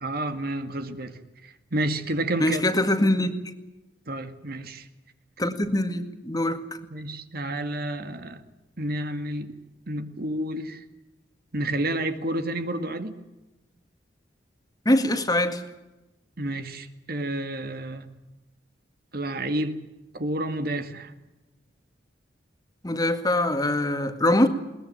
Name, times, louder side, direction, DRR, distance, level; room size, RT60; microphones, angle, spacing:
voice 1, 0.0-2.6 4.1-4.9 6.9-8.4 8.8-9.5 9.9-10.8 11.5-13.2 16.4-18.1 19.1-19.8 20.1-21.2, right 1 dB, 60° right, 2.1 m, -30 dB
voice 2, 2.4-3.4 5.4-6.6 14.9-15.6 22.8-24.5, left 1 dB, 20° left, 2.0 m, -23 dB
21.5 x 20.5 x 9.0 m
head